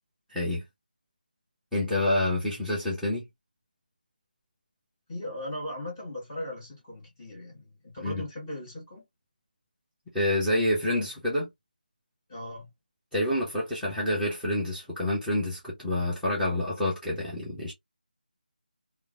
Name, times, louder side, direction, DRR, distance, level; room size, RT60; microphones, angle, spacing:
voice 1, 0.3-0.6 1.7-3.2 8.0-8.2 10.1-11.5 13.1-17.7, left 1 dB, 5° left, 0.7 m, -28 dB
voice 2, 5.1-9.0 12.3-12.7, left 1 dB, 20° left, 1.5 m, -38 dB
3.0 x 2.1 x 2.4 m
figure-of-eight pair, 160°, 5 cm